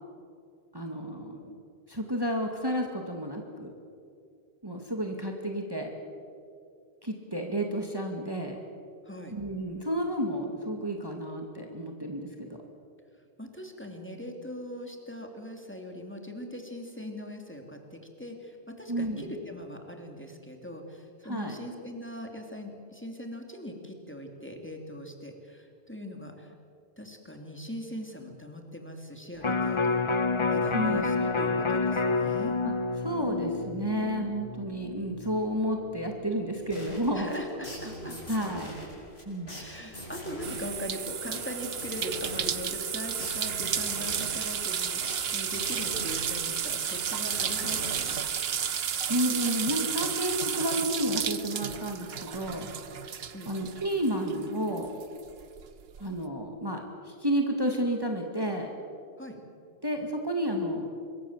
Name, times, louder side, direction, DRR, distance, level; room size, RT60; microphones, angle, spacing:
voice 1, 0.7-1.5 1.9-3.7 4.6-5.9 7.0-8.6 9.3-12.6 18.9-19.3 21.2-21.6 30.7-31.0 33.0-37.3 38.0-38.7 39.3-39.6 49.1-52.7 53.5-54.9 56.0-58.7 59.8-60.9, equal, 20° right, 2 dB, 2.2 m, -31 dB
voice 2, 9.0-9.3 13.4-26.5 27.0-30.0 30.5-32.6 37.1-38.1 39.5-48.2 53.3-53.5 59.2-59.4, equal, 10° left, 3 dB, 2.9 m, -40 dB
Electric guitar, 29.4-35.6 36.0-36.1, left 3 dB, 30° left, 0.9 m, -29 dB
sound 1, 36.7-48.8, right 1 dB, 70° left, 6.6 m, -43 dB
sound 2, 40.4-54.4 54.8-56.0, right 8 dB, 70° right, 1.1 m, -32 dB
26.0 x 22.5 x 7.4 m, 2.5 s
omnidirectional pair, 1.1 m